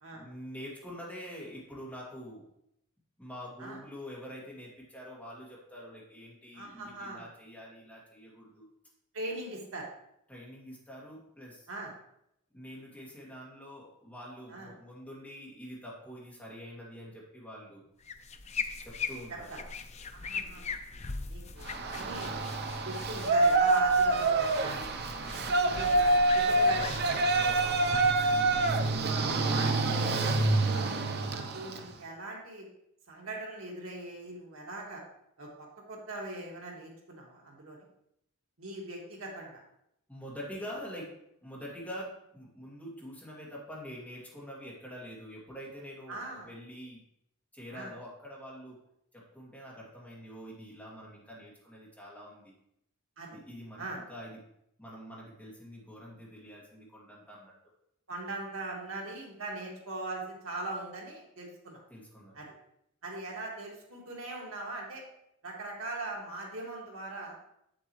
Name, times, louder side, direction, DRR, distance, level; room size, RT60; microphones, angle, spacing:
voice 1, 0.1-2.4 3.2-8.7 10.3-11.7 12.5-17.8 18.8-19.5 25.0-25.6 27.3-27.9 40.1-41.1 41.4-47.0 47.5-48.8 49.1-52.5 53.3-54.4 54.8-57.5 61.9-62.4, equal, 5° left, -5 dB, 2.2 m, -45 dB
voice 2, 6.5-7.3 9.1-9.9 11.7-11.9 14.5-14.7 19.3-19.6 20.1-20.7 21.3-24.9 25.4-27.5 28.2-28.3 29.0-32.7 33.1-35.0 35.4-37.9 38.6-39.6 46.1-46.5 47.7-47.9 53.2-53.4 53.8-54.0 58.1-61.8 62.3-62.5 63.0-65.0 65.4-67.4, right 2 dB, 70° right, -2 dB, 1.9 m, -41 dB
sound 1, 18.0-30.0, left 4 dB, 30° left, 0.5 m, -41 dB
Yell, 21.6-31.9, right 2 dB, 50° right, 0.6 m, -27 dB
8.2 x 7.4 x 3.1 m, 0.77 s
head